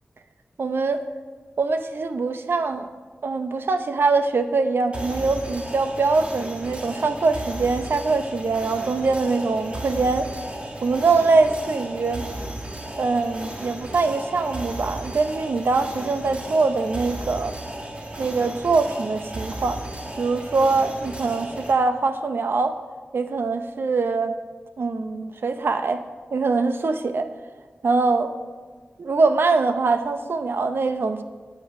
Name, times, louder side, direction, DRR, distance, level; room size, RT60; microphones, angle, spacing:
voice 1, 0.6-1.0 1.6-2.9 3.2-10.3 10.8-12.2 13.0-17.5 18.2-19.8 20.2-22.8 23.1-24.4 24.8-26.0 26.3-27.3 27.8-28.3 29.0-31.2, right 3 dB, 75° right, 9 dB, 0.7 m, -23 dB
sound 1, 4.9-21.7, right 1 dB, 30° right, 1.5 m, -35 dB
8.8 x 8.4 x 4.8 m, 1.4 s
wide cardioid pair, 90°, 4 cm